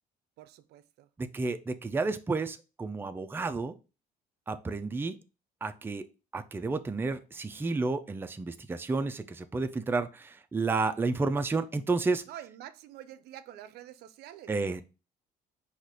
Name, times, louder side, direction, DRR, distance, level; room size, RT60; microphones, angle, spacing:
voice 1, 0.4-1.1 12.3-14.8, right 12 dB, 75° right, 0.5 m, -47 dB
voice 2, 1.2-3.7 4.5-5.2 5.6-6.1 6.3-12.2 14.5-14.8, right 3 dB, 15° right, 0.4 m, -31 dB
4.2 x 2.4 x 4.7 m
cardioid pair, 110°, 17 cm